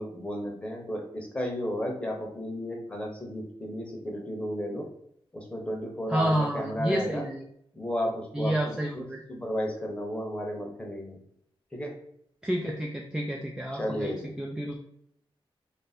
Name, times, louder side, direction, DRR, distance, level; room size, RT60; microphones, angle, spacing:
voice 1, 0.0-4.8 5.3-7.2 7.7-8.5 8.9-9.0 9.3-11.2 11.7-11.9 13.7-14.3, equal, 10° left, 0 dB, 0.8 m, -33 dB
voice 2, 6.1-7.4 8.3-9.2 12.4-14.8, right 1 dB, 10° right, 1 dB, 0.3 m, -30 dB
3.2 x 2.6 x 4.1 m, 0.70 s
wide cardioid pair, 160°, 10 cm